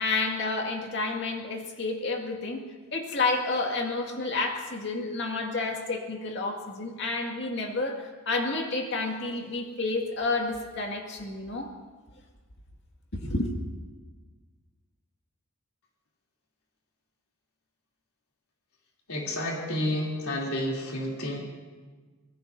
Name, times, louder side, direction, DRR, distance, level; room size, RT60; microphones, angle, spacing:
voice 1, 0.0-2.6 2.9-11.7 13.1-13.5, left 3 dB, 55° left, 1 dB, 2.2 m, -30 dB
voice 2, 19.1-21.4, left 1 dB, 85° left, -3 dB, 3.2 m, -30 dB
25.5 x 20.0 x 2.7 m, 1.4 s
head